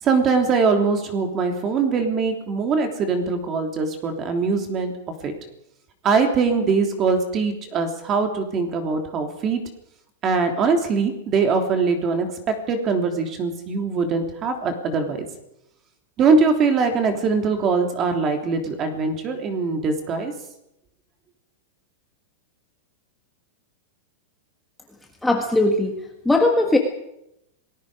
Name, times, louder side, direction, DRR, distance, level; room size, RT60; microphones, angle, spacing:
voice 1, 0.0-4.9 5.2-5.3 6.0-9.6 10.2-12.3 12.7-15.3 16.2-20.3, right 4 dB, 25° right, 5 dB, 3.2 m, -22 dB
voice 2, 25.2-25.9 26.2-26.8, left 2 dB, 5° left, 2 dB, 1.7 m, -19 dB
27.5 x 19.5 x 5.0 m, 0.82 s
supercardioid pair, 165°, 0 cm